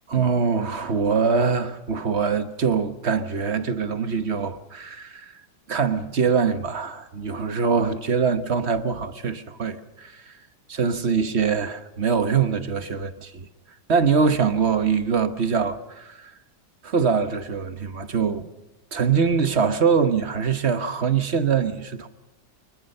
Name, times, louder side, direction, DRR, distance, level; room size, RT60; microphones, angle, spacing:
voice 1, 0.1-5.3 5.7-10.3 10.7-13.5 13.9-16.3 16.8-18.5 18.9-22.1, right 6 dB, 40° right, 1.1 m, -23 dB
25.0 x 21.5 x 6.7 m
omnidirectional pair, 2.1 m